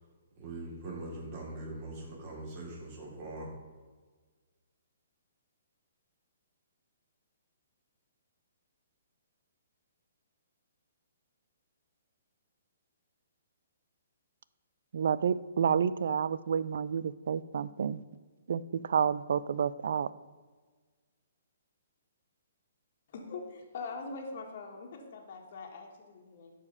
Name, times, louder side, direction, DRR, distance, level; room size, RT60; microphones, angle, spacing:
voice 1, 0.4-3.5, right 2 dB, 30° right, -3 dB, 3.4 m, -42 dB
voice 2, 14.9-18.0 18.5-20.1, right 7 dB, 65° right, 17 dB, 0.5 m, -29 dB
voice 3, 23.1-26.5, left 4 dB, 45° left, 0 dB, 1.7 m, -43 dB
12.0 x 5.1 x 5.4 m, 1.4 s
hypercardioid pair, 165°, 0 cm